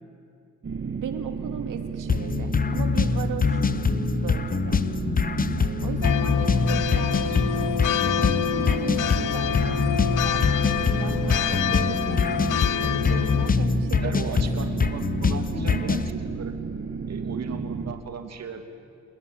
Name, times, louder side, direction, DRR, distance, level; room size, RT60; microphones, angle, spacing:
sound 1, 0.6-17.9, right 5 dB, 40° right, 1.5 m, -33 dB
voice 1, 1.0-4.8 5.6-12.2 12.8-14.4, right 8 dB, 85° right, 6 dB, 2.6 m, -38 dB
sound 2, 2.1-16.1, left 5 dB, 30° left, 0.9 m, -24 dB
sound 3, 6.0-13.5, left 11 dB, 90° left, 0.9 m, -28 dB
voice 2, 14.0-16.6 17.1-18.6, right 6 dB, 55° right, 6 dB, 2.8 m, -36 dB
28.5 x 20.0 x 9.1 m, 2.4 s
cardioid pair, 115°, 31 cm